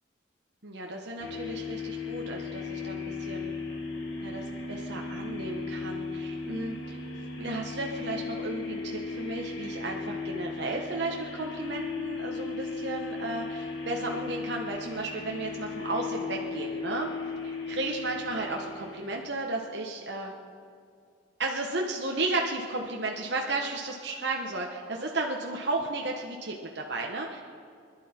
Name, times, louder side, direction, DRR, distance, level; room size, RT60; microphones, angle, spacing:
voice 1, 0.6-3.5 4.2-7.0 7.4-17.1 17.7-20.3 21.4-27.4, right 2 dB, 60° right, 0 dB, 1.2 m, -34 dB
sound 1, 1.2-19.5, left 4 dB, 75° left, 2.6 m, -36 dB
25.0 x 12.0 x 4.4 m, 2.3 s
head